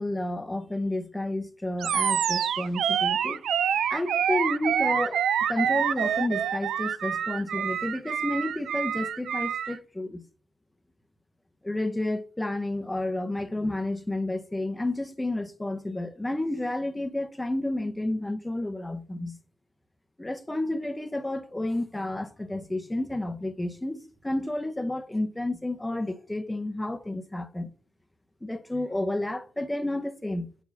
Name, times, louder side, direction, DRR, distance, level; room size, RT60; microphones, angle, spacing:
voice 1, 0.0-3.4 3.9-5.2 5.5-10.2 11.6-19.4 20.2-27.7 28.4-30.5, left 1 dB, 10° left, 0.8 m, -31 dB
Animal, 1.8-9.8, right 8 dB, 75° right, 0.4 m, -27 dB
5.5 x 4.7 x 5.8 m
cardioid pair, 90°, 0 cm